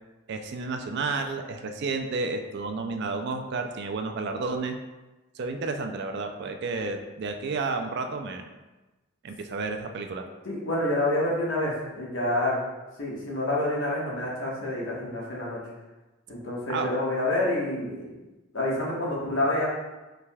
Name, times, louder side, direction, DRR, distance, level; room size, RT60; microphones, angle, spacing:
voice 1, 0.3-4.8 5.3-8.5 9.2-10.3 16.7-16.9, right 3 dB, 55° right, 6 dB, 0.4 m, -31 dB
voice 2, 10.4-12.6 13.0-15.6 16.3-18.1 18.5-19.7, left 1 dB, 65° left, -4 dB, 1.2 m, -28 dB
5.7 x 3.3 x 2.3 m, 1.1 s
head